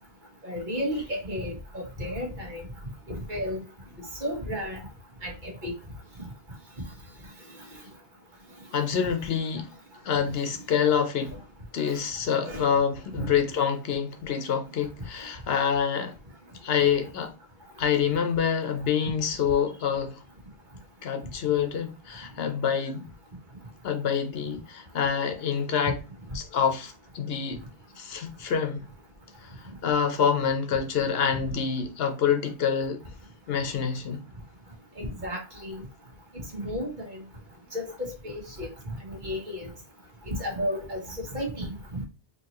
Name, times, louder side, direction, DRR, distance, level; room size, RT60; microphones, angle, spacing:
voice 1, 0.4-2.6 3.1-3.6 4.2-4.8 5.2-5.7 6.2-6.3 11.8-12.0 12.4-12.7 13.1-13.3 35.0-35.8 36.5-37.2 37.7-39.7 40.3-41.7 41.9-42.0, equal, 50° right, 1.4 m, -33 dB
voice 2, 8.7-9.7 10.0-11.3 11.7-16.1 16.6-17.3 17.8-20.2 21.0-23.1 23.8-26.0 26.3-27.6 28.0-28.9 29.4-29.5 29.8-33.0 33.5-34.2, left 7 dB, 70° left, 0.9 m, -26 dB
4.5 x 2.9 x 2.9 m
omnidirectional pair, 1.1 m